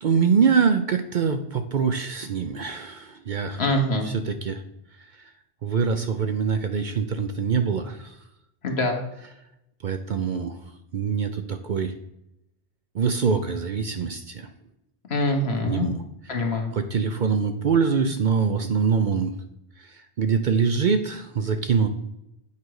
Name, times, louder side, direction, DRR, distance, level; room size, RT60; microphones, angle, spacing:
voice 1, 0.0-3.6 4.1-4.6 5.6-8.2 9.8-10.5 10.9-11.9 12.9-14.5 15.6-15.9 16.7-19.3 19.8-19.9 20.2-21.9, right 6 dB, 55° right, 8 dB, 0.6 m, -24 dB
voice 2, 3.6-4.1 8.6-9.0 15.1-15.9 16.3-16.7, left 1 dB, 65° left, 3 dB, 1.5 m, -24 dB
8.4 x 5.1 x 4.7 m, 0.85 s
omnidirectional pair, 1.1 m